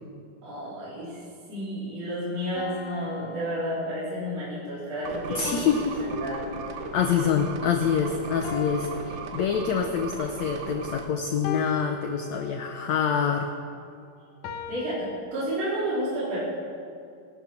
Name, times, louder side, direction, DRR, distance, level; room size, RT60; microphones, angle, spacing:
voice 1, 0.4-1.2 1.5-6.4 14.7-16.4, equal, 45° right, -9 dB, 5.1 m, -31 dB
sound 1, 2.5-4.3 5.4-7.1 8.4-10.1 11.4-12.9 14.4-15.2, left 5 dB, 70° left, 2.3 m, -39 dB
sound 2, 5.0-11.1, right 4 dB, 80° right, 2.8 m, -37 dB
voice 2, 5.3-6.1 6.9-13.5, left 7 dB, 85° left, 4 dB, 1.5 m, -26 dB
22.0 x 9.5 x 5.9 m, 2.3 s
omnidirectional pair, 4.2 m